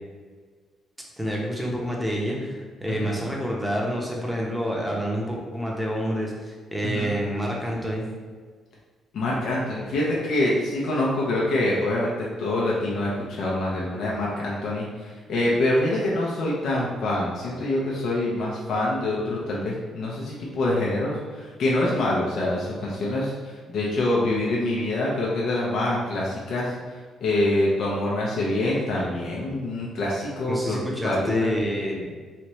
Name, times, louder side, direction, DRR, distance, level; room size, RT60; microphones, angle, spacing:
voice 1, 1.2-8.1 29.0-29.3 30.5-32.1, equal, 5° right, -2 dB, 0.8 m, -28 dB
voice 2, 9.1-26.7 27.2-31.5, left 1 dB, 70° left, -5 dB, 0.7 m, -25 dB
3.3 x 2.8 x 3.1 m, 1.5 s
cardioid pair, 90°, 0 cm